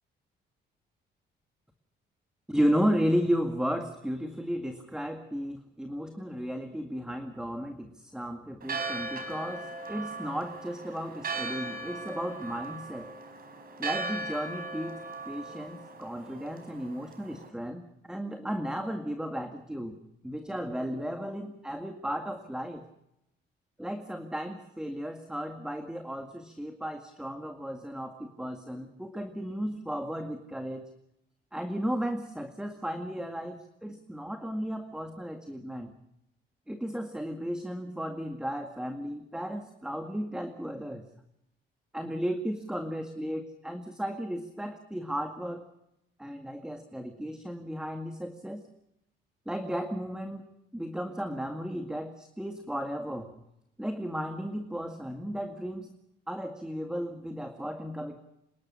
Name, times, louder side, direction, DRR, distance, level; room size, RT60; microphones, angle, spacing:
voice 1, 2.5-13.1 13.8-20.0 20.2-22.8 23.8-30.9 31.5-35.9 36.7-41.0 41.9-45.7 46.2-48.7 49.5-50.4 50.7-53.4 53.8-55.9 56.3-58.2, equal, 5° right, 5 dB, 2.0 m, -34 dB
Church bell, 8.6-17.5, right 3 dB, 50° right, 4.7 m, -38 dB
27.5 x 12.0 x 9.9 m, 0.82 s
cardioid pair, 90°, 20 cm